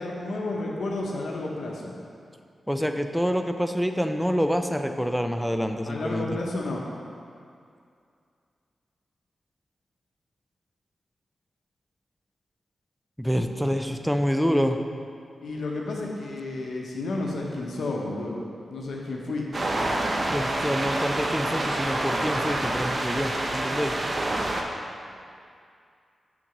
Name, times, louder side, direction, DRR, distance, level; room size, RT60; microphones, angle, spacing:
voice 1, 0.0-1.9 5.8-6.9 15.4-19.7, left 2 dB, 80° left, -2 dB, 0.8 m, -31 dB
voice 2, 2.7-6.2 13.2-14.8 20.3-23.9, equal, ahead, 6 dB, 0.4 m, -26 dB
sound 1, 19.5-24.6, right 1 dB, 45° right, 0.7 m, -27 dB
6.0 x 4.0 x 5.9 m, 2.4 s
cardioid pair, 70°, 0 cm